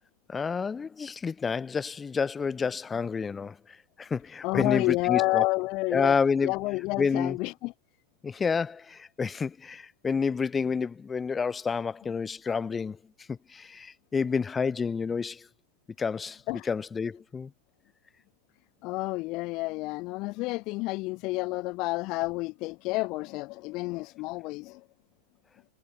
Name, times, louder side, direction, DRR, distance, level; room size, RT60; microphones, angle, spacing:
voice 1, 0.3-5.4 5.9-6.5 7.0-7.4 8.2-13.0 13.3-15.5 16.0-17.5, left 5 dB, 15° left, 2.6 m, -29 dB
voice 2, 4.4-6.2 6.4-7.7 16.5-16.7 18.8-24.8, left 23 dB, 40° left, 1.2 m, -30 dB
figure-of-eight pair, 90°, 0 cm